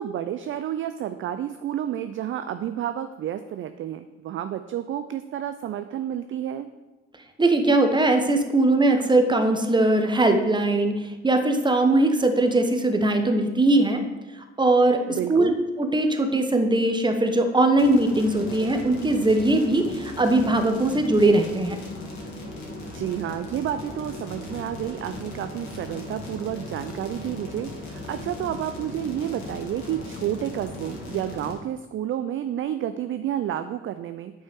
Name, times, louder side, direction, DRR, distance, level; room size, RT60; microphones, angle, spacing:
voice 1, 0.0-6.7 15.1-15.6 22.9-34.3, right 11 dB, 40° right, 10 dB, 0.4 m, -30 dB
voice 2, 7.4-14.0 14.6-15.5 15.8-21.8, right 2 dB, 15° right, 6 dB, 1.0 m, -20 dB
sound 1, 17.8-31.5, left 2 dB, 55° left, 2.1 m, -38 dB
8.7 x 5.3 x 3.5 m, 1.1 s
hypercardioid pair, 50°, 34 cm